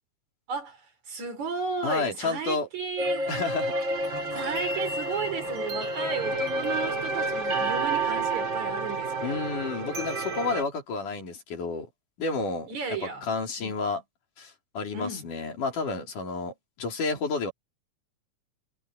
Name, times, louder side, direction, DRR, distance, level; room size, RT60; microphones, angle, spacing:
voice 1, 0.5-3.3 4.3-9.4 12.7-13.3 13.6-13.7 14.9-15.3, right 4 dB, 65° right, 6.6 m, -34 dB
voice 2, 1.8-2.7 3.3-3.7 9.2-11.9 12.2-12.7 13.2-14.0 14.4-17.5, left 4 dB, 85° left, 5.4 m, -30 dB
sound 1, 3.0-10.6, right 2 dB, 35° right, 5.3 m, -29 dB
omnidirectional pair, 3.5 m